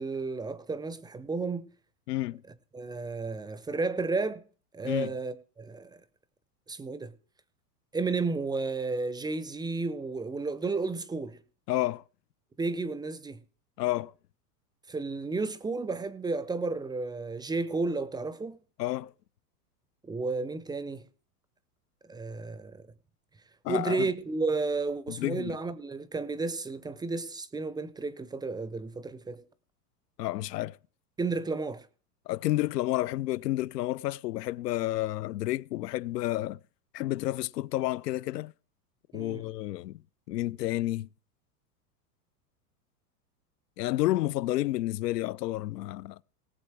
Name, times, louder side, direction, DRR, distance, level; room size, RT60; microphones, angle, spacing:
voice 1, 0.0-1.7 2.7-4.4 4.7-6.0 6.7-7.1 7.9-11.4 12.6-13.4 14.9-18.6 20.0-21.0 22.1-22.9 23.7-29.4 31.2-31.9 39.1-39.4, right 3 dB, 10° right, 0.5 m, -32 dB
voice 2, 2.1-2.4 4.8-5.1 11.7-12.0 13.8-14.1 18.8-19.1 23.6-24.1 25.2-25.6 30.2-30.8 32.3-36.6 36.9-38.5 39.1-40.0 40.3-41.1 43.8-46.2, left 16 dB, 85° left, 0.5 m, -30 dB
18.5 x 7.0 x 4.6 m
hypercardioid pair, 115°, 47 cm